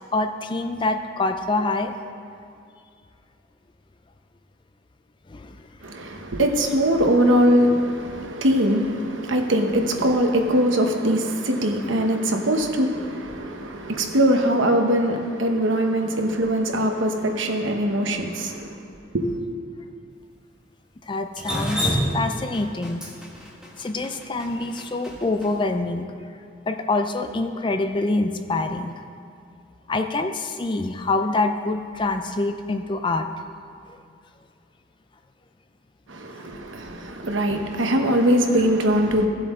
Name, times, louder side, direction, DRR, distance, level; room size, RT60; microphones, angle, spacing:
voice 1, 0.0-1.9 5.3-5.6 21.1-23.1 23.8-26.1 26.7-28.9 29.9-33.3, left 2 dB, 25° left, 0.4 m, -25 dB
voice 2, 5.8-18.7 19.1-19.3 36.1-39.3, equal, 80° right, 1.0 m, -21 dB
Drip, 21.4-25.5, equal, 5° right, 1.3 m, -27 dB
15.5 x 7.7 x 3.7 m
head